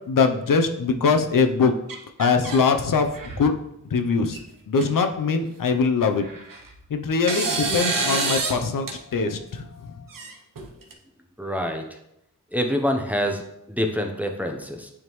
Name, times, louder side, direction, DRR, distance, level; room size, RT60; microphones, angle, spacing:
voice 1, 0.1-1.8 2.2-3.1 3.4-3.6 3.9-4.4 4.7-6.2 6.9-9.9, left 5 dB, 75° left, 6 dB, 0.7 m, -22 dB
sound 1, 1.9-2.6 3.0-3.5 4.3-4.4 4.8-4.9 6.2-6.8 7.3-8.6 8.9-9.0 10.1-10.9, right 3 dB, 80° right, 1.0 m, -27 dB
voice 2, 11.4-11.8 12.5-13.4 13.7-14.9, equal, 5° right, 3 dB, 0.7 m, -26 dB
9.3 x 3.6 x 3.1 m, 0.80 s
wide cardioid pair, 110°, 33 cm